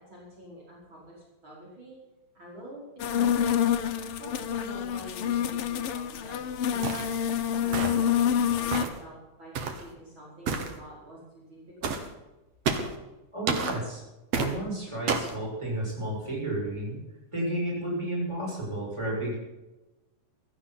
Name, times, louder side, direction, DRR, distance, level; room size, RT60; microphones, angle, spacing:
voice 1, 0.0-2.0 2.3-3.5 4.2-7.1 7.6-12.0, right 1 dB, 40° right, -6 dB, 5.7 m, -47 dB
sound 1, 3.0-8.8, left 9 dB, 75° left, 1.3 m, -27 dB
sound 2, 6.8-7.2 7.7-8.1 8.7-9.0 9.5-9.8 10.5-10.7 11.8-12.1 12.7-13.0 13.5-13.8 14.3-14.5 15.1-15.4, right 5 dB, 60° right, 2.5 m, -29 dB
voice 2, 13.3-14.0 14.3-17.0 17.3-19.4, right 1 dB, 10° right, -4 dB, 6.6 m, -32 dB
16.5 x 12.0 x 6.0 m, 1.0 s
omnidirectional pair, 3.6 m